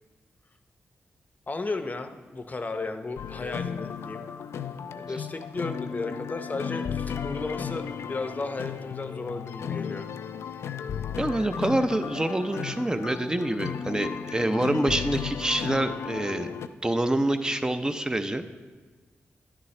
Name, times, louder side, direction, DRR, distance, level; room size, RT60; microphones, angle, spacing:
voice 1, 1.5-4.2 4.9-10.1, left 3 dB, 40° left, 7 dB, 0.7 m, -34 dB
sound 1, 3.2-16.7, left 7 dB, 80° left, 0.3 m, -34 dB
voice 2, 11.2-16.5 16.8-18.4, right 1 dB, 15° right, 8 dB, 0.6 m, -26 dB
10.5 x 10.0 x 3.2 m, 1.4 s
cardioid pair, 60°, 4 cm